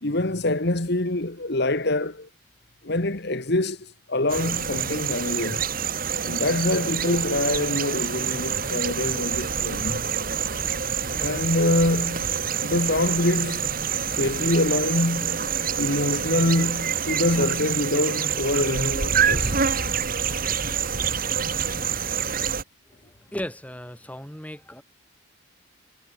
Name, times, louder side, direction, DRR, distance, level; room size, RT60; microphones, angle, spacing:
voice 1, 0.0-2.3 2.8-5.6 6.2-10.1 11.2-12.3 12.6-13.8 14.1-15.5 15.8-19.6, left 2 dB, 50° left, 1.8 m, -25 dB
sound 1, 4.3-22.6, right 7 dB, 40° right, 2.1 m, -27 dB
voice 2, 22.9-24.8, equal, 5° left, 3.8 m, -36 dB
head